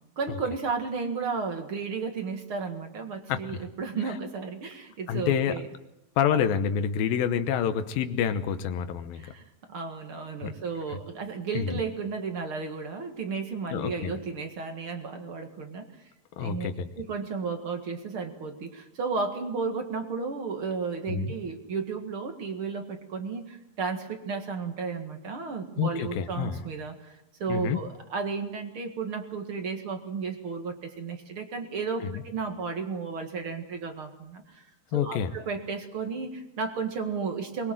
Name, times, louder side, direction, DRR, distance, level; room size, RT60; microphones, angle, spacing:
voice 1, 0.2-5.7 9.1-15.9 16.4-16.7 17.0-34.6 34.9-37.7, right 5 dB, 45° right, 5 dB, 2.2 m, -33 dB
voice 2, 5.1-5.6 6.2-9.2 10.4-10.5 11.5-11.8 13.7-14.1 16.4-16.9 21.1-21.3 25.8-26.6 27.5-27.8 32.1-32.2 34.9-35.3, left 8 dB, 85° left, 10 dB, 2.8 m, -27 dB
22.5 x 21.5 x 7.6 m, 0.88 s
omnidirectional pair, 4.0 m